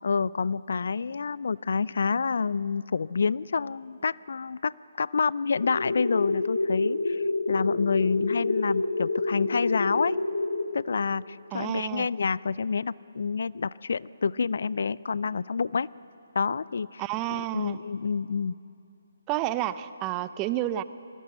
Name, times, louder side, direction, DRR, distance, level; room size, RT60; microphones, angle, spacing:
voice 1, 0.0-4.7 5.0-10.2 10.7-15.9 16.3-17.0 17.3-18.6, left 5 dB, 65° left, 21 dB, 0.4 m, -28 dB
sound 1, 5.6-10.6, left 2 dB, 85° left, 1.9 m, -28 dB
voice 2, 11.5-12.1 17.0-17.8 19.3-20.8, right 14 dB, 20° right, 15 dB, 0.5 m, -30 dB
20.5 x 16.5 x 7.9 m, 2.7 s
hypercardioid pair, 150°, 0 cm